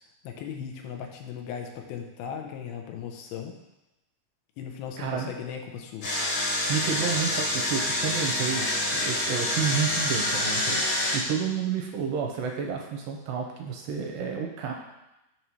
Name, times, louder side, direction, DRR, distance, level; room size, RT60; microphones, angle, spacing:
voice 1, 0.2-3.5 4.6-6.1, left 7 dB, 90° left, 4 dB, 2.6 m, -37 dB
voice 2, 5.0-5.4 6.7-8.7 8.9-14.7, right 7 dB, 80° right, 1 dB, 2.3 m, -30 dB
Engine, 6.0-11.2, left 1 dB, 55° left, 1.5 m, -27 dB
6.2 x 3.0 x 5.4 m, 0.94 s
omnidirectional pair, 4.2 m